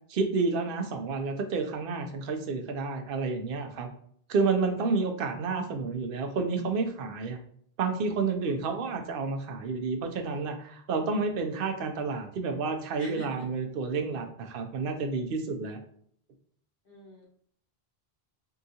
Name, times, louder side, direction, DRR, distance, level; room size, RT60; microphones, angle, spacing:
voice 1, 0.1-3.9 4.3-7.4 7.8-15.8, right 4 dB, 65° right, 5 dB, 0.7 m, -30 dB
voice 2, 16.9-17.3, right 2 dB, 65° left, -3 dB, 1.3 m, -44 dB
3.7 x 2.3 x 2.7 m, 0.63 s
omnidirectional pair, 1.0 m